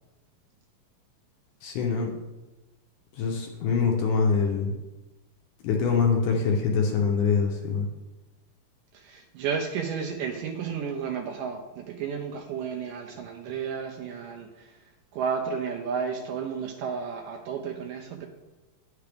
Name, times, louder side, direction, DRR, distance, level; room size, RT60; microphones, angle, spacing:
voice 1, 1.6-2.1 3.2-4.7 5.6-7.9, left 5 dB, 75° left, 1 dB, 2.0 m, -24 dB
voice 2, 8.9-14.7 15.1-18.3, right 6 dB, 80° right, 3 dB, 2.0 m, -32 dB
10.5 x 5.8 x 3.4 m, 1.1 s
omnidirectional pair, 4.2 m